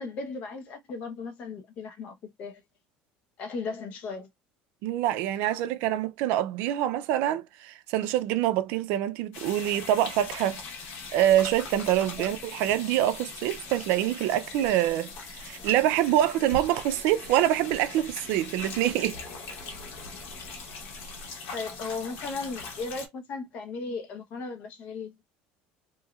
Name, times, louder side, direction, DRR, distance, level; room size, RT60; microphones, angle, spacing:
voice 1, 0.0-2.6 3.4-4.3 21.5-25.2, left 4 dB, 45° left, 0.8 m, -36 dB
voice 2, 4.8-10.6 11.1-19.2, right 12 dB, 70° right, 0.4 m, -25 dB
sound 1, 9.3-23.1, left 4 dB, 70° left, 1.2 m, -41 dB
3.0 x 2.7 x 2.3 m
cardioid pair, 145°, 3 cm